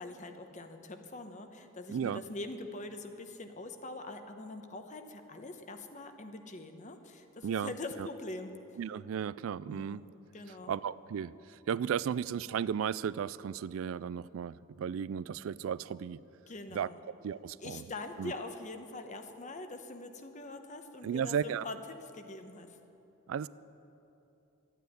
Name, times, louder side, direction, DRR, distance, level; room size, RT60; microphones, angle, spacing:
voice 1, 0.0-8.6 9.7-10.0 10.3-10.8 16.5-17.0 17.6-22.8, left 2 dB, 35° left, 7 dB, 1.0 m, -43 dB
voice 2, 1.9-2.2 7.4-7.7 8.0-8.1 8.8-10.0 10.7-16.2 16.7-16.9 17.2-17.8 18.2-18.3 21.0-21.6 23.3-23.5, right 8 dB, 75° right, 19 dB, 0.3 m, -34 dB
12.5 x 9.2 x 9.4 m, 2.9 s
head